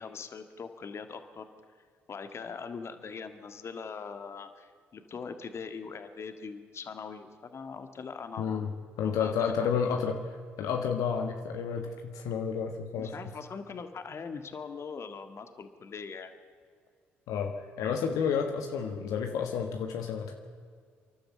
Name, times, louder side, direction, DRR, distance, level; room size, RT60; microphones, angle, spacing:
voice 1, 0.0-1.5 2.1-8.7 9.0-9.3 9.6-9.8 10.0-10.1 12.9-16.3, left 5 dB, 45° left, 8 dB, 1.8 m, -41 dB
voice 2, 8.4-8.7 9.0-10.2 10.6-13.1 17.3-20.3, left 6 dB, 70° left, 4 dB, 1.5 m, -30 dB
28.0 x 11.5 x 7.9 m, 2.1 s
hypercardioid pair, 50°, 6 cm